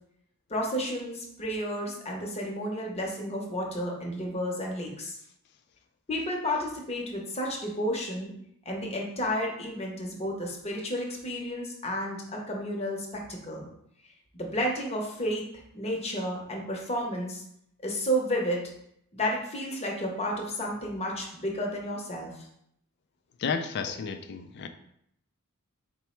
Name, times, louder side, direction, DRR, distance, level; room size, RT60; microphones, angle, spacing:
voice 1, 0.5-5.2 6.1-8.3 8.7-13.7 14.3-15.4 15.7-17.4 17.8-18.7 19.1-22.5, equal, 30° left, -1 dB, 0.7 m, -31 dB
voice 2, 23.4-24.7, left 5 dB, 50° left, 7 dB, 0.3 m, -32 dB
4.4 x 2.0 x 4.3 m, 0.73 s
head